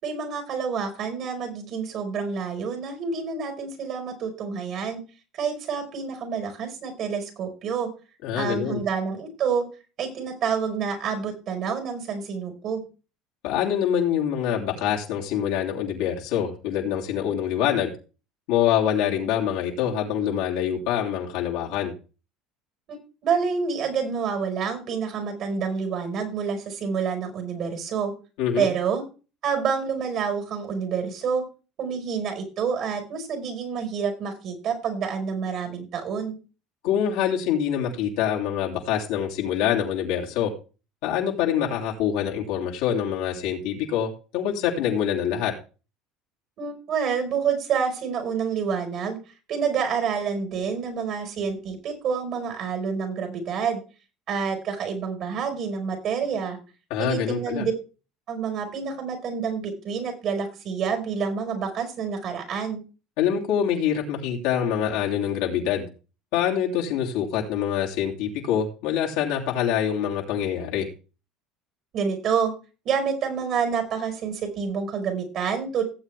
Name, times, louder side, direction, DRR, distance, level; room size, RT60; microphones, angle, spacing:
voice 1, 0.0-5.0 5.3-7.9 8.4-9.6 10.0-12.8 22.9-28.1 28.6-29.0 29.4-31.4 31.8-36.3 46.6-49.2 49.5-53.8 54.3-56.6 57.0-57.7 58.3-62.8 71.9-72.5 72.8-75.8, right 6 dB, 55° right, 5 dB, 5.0 m, -28 dB
voice 2, 8.2-8.8 13.4-17.9 18.5-21.9 28.4-28.7 36.8-40.5 41.0-45.5 56.9-57.6 63.2-65.9 66.3-70.9, left 9 dB, 80° left, -2 dB, 3.0 m, -25 dB
17.5 x 7.8 x 3.4 m, 0.33 s
supercardioid pair, 100°, 0 cm